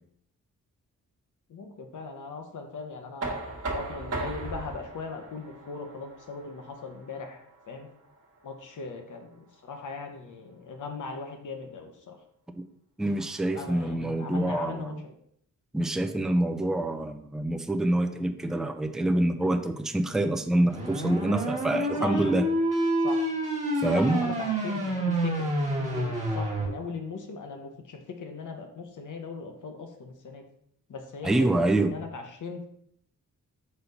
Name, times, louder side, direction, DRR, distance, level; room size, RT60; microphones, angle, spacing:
voice 1, 1.5-3.3 3.7-7.9 8.4-12.2 13.5-15.1 22.0-22.3 23.0-23.3 23.9-30.4 30.9-31.3 31.7-32.7, left 4 dB, 65° left, 4 dB, 1.0 m, -39 dB
Knock, 3.2-9.0, right 2 dB, 50° right, 1.2 m, -38 dB
voice 2, 13.0-15.0 15.7-22.5 23.8-24.2 31.2-31.9, right 1 dB, ahead, 6 dB, 0.3 m, -26 dB
sound 1, 20.7-26.7, right 1 dB, 20° right, 1.2 m, -28 dB
4.3 x 4.1 x 5.2 m, 0.70 s
wide cardioid pair, 145°, 33 cm